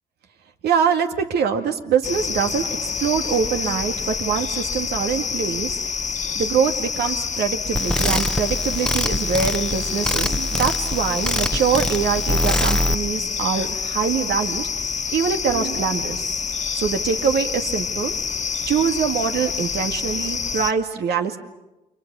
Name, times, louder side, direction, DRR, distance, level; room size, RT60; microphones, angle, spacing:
voice 1, 0.6-2.6 3.0-5.8 6.3-14.7 15.1-16.4 16.7-18.1 18.7-21.4, right 7 dB, 75° right, 6 dB, 2.1 m, -24 dB
sound 1, 2.0-20.7, left 6 dB, 45° left, 1.5 m, -27 dB
sound 2, 7.7-12.9, left 1 dB, 5° left, 1.0 m, -24 dB
29.5 x 24.5 x 7.0 m, 1.0 s
supercardioid pair, 50°, 17 cm